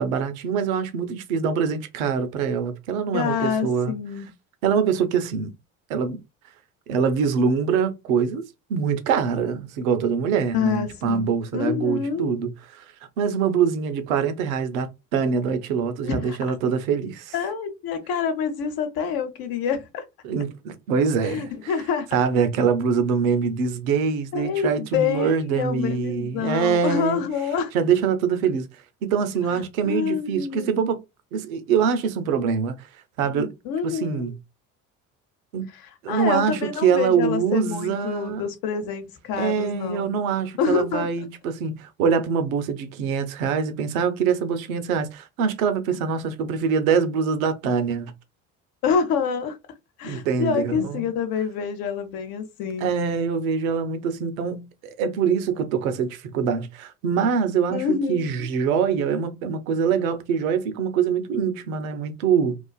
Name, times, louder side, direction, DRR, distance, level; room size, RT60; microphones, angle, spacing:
voice 1, 0.0-3.9 4.6-5.5 5.9-6.2 6.9-8.4 8.7-12.8 13.2-17.3 20.2-21.7 22.1-27.2 27.7-28.7 29.0-31.0 31.3-32.9 33.2-33.5 33.8-34.3 35.5-35.7 36.0-38.4 39.4-48.1 50.0-51.1 52.8-54.7 55.0-62.6, right 6 dB, 75° right, 0.6 m, -24 dB
voice 2, 3.1-4.3 10.5-12.3 16.0-16.4 17.3-20.0 21.2-22.1 24.3-27.7 29.5-30.8 33.3-34.3 35.7-40.1 40.6-41.1 48.8-49.6 50.0-53.0 57.7-58.5, left 6 dB, 55° left, 0.8 m, -27 dB
2.4 x 2.3 x 2.3 m
hypercardioid pair, 55°, 41 cm